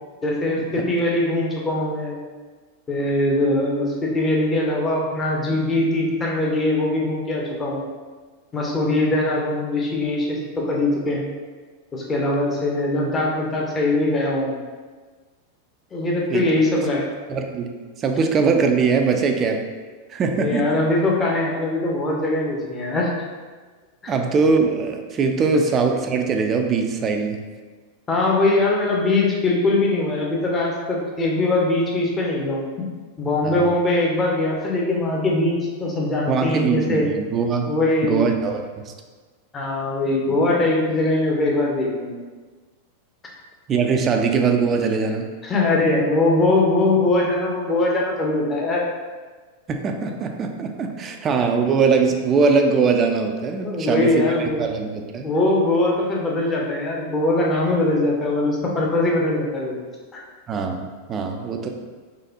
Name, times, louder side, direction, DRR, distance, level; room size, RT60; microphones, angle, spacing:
voice 1, 0.2-2.2 2.9-7.8 8.5-11.2 11.9-14.6 15.9-17.1 20.4-23.1 24.0-24.1 28.1-32.9 33.2-37.1 37.7-38.2 39.5-42.2 45.4-48.8 53.6-54.6 55.2-59.8 60.1-60.2, left 2 dB, 20° left, -2 dB, 0.8 m, -21 dB
voice 2, 17.3-17.7 18.0-19.6 20.1-20.8 24.1-27.4 33.4-33.7 36.3-37.7 38.0-38.9 43.7-45.3 49.7-55.3 60.5-61.7, right 5 dB, 25° right, 4 dB, 0.4 m, -21 dB
4.0 x 3.1 x 2.8 m, 1.4 s
figure-of-eight pair, 90°, 0 cm